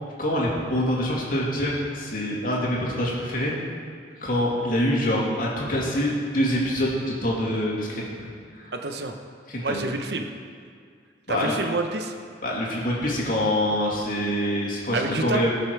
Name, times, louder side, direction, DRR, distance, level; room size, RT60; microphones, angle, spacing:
voice 1, 0.2-3.5 4.2-8.1 8.5-8.7 9.5-9.8 11.3-11.6 12.4-15.5, left 1 dB, 45° left, -4 dB, 2.4 m, -25 dB
voice 2, 8.7-9.1 9.6-10.3 11.3-12.1 14.9-15.4, right 2 dB, 60° right, 5 dB, 0.9 m, -28 dB
18.5 x 6.8 x 4.7 m, 2.1 s
head